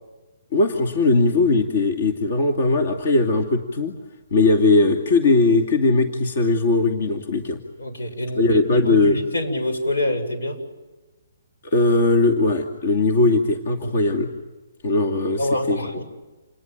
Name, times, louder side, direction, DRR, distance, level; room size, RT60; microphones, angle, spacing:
voice 1, 0.5-3.9 4.3-7.6 8.4-9.2 11.6-14.3 14.8-15.9, left 3 dB, 50° left, 5 dB, 2.5 m, -19 dB
voice 2, 7.8-10.6 15.4-16.0, left 1 dB, 90° left, 6 dB, 7.7 m, -26 dB
28.5 x 20.5 x 9.2 m, 1.1 s
hypercardioid pair, 170°, 0 cm